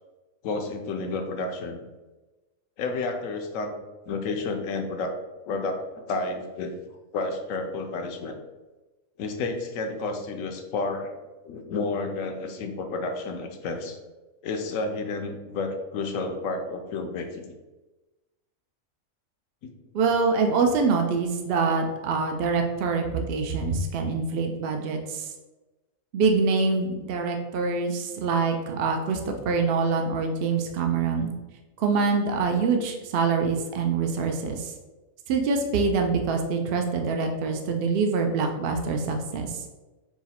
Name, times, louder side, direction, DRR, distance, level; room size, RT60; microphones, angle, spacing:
voice 1, 0.4-1.8 2.8-3.7 4.1-5.1 5.4-6.7 7.1-8.4 9.2-11.1 11.4-14.0 14.4-17.5 19.6-19.7, left 3 dB, 70° left, 5 dB, 0.9 m, -31 dB
voice 2, 19.9-25.3 26.1-31.3 31.8-34.7 35.3-39.6, right 4 dB, 70° right, 4 dB, 0.5 m, -25 dB
4.7 x 2.1 x 4.1 m, 1.1 s
omnidirectional pair, 1.5 m